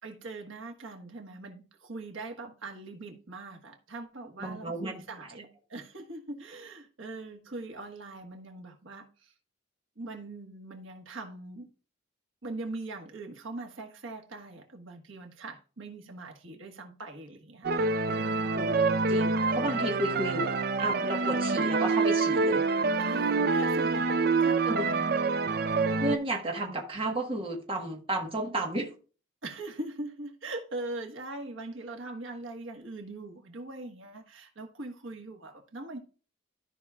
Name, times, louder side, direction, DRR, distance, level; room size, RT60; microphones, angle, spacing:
voice 1, 0.0-9.3 10.0-11.7 12.4-17.7 18.1-18.5 23.0-25.1 29.4-36.0, right 2 dB, 85° right, 1.5 m, -41 dB
voice 2, 4.4-4.9 5.2-5.3 18.5-18.8 19.1-20.5 20.8-22.6 24.6-24.9 26.0-28.9, right 1 dB, 30° right, 1.4 m, -32 dB
sound 1, 17.6-26.2, right 4 dB, 50° right, 0.5 m, -26 dB
13.5 x 5.5 x 2.4 m
head